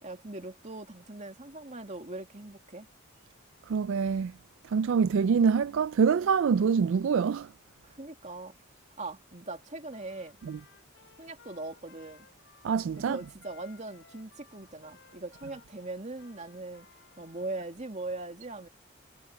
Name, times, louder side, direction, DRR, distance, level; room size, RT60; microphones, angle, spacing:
voice 1, 0.0-2.9 7.8-8.5 9.0-10.4 11.2-12.3 13.0-16.9 17.2-18.7, right 2 dB, 35° right, 2.4 m, -40 dB
voice 2, 3.7-4.3 4.7-7.5 10.4-10.6 12.6-13.2, right 6 dB, 65° right, 0.3 m, -25 dB
Trumpet, 9.9-17.7, left 5 dB, 60° left, 5.7 m, -60 dB
head